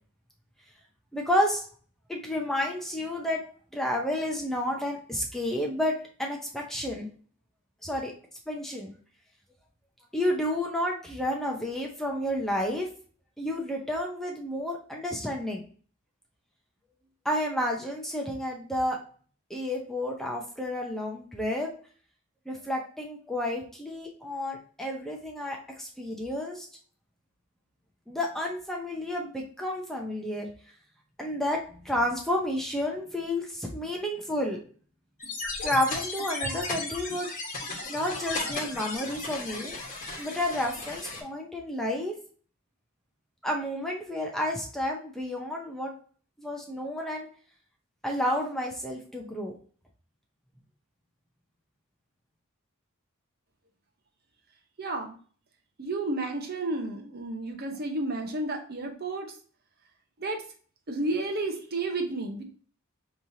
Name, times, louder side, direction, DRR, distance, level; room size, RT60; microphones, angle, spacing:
voice 1, 1.1-1.7 2.1-3.4 3.7-7.1 7.8-8.1 8.5-8.9 10.1-12.9 13.4-15.6 17.2-19.0 19.5-21.7 22.5-26.7 28.1-30.5 31.2-31.6 31.8-34.6 35.6-37.3 37.9-39.8 40.2-42.1 43.4-45.9 46.4-47.3 48.0-49.6, left 1 dB, ahead, 0 dB, 0.6 m, -30 dB
sound 1, 35.2-41.2, left 3 dB, 40° left, 1.3 m, -35 dB
voice 2, 54.8-55.2 55.8-59.3 60.2-60.4 60.9-62.4, right 2 dB, 45° right, 4 dB, 0.8 m, -31 dB
5.3 x 3.1 x 2.7 m, 0.43 s
head